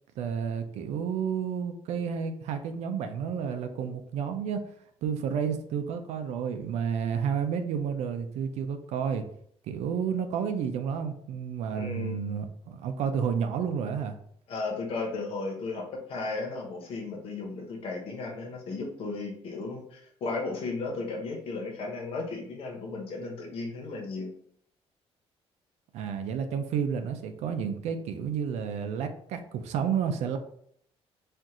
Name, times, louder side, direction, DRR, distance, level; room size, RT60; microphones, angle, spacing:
voice 1, 0.2-4.6 5.0-9.2 9.7-14.2 25.9-30.4, right 7 dB, 85° right, 7 dB, 0.6 m, -31 dB
voice 2, 11.8-12.2 14.5-24.3, left 3 dB, 60° left, 1 dB, 1.1 m, -35 dB
4.4 x 2.5 x 3.7 m, 0.65 s
cardioid pair, 175°, 11 cm